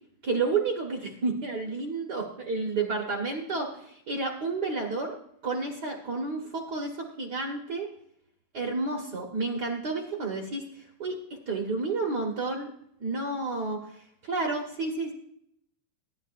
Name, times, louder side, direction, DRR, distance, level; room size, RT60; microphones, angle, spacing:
voice 1, 0.2-5.2 5.4-7.9 8.5-11.2 11.5-12.7 13.0-15.1, right 3 dB, 80° right, 0 dB, 0.9 m, -31 dB
23.5 x 10.5 x 2.5 m, 0.72 s
omnidirectional pair, 3.9 m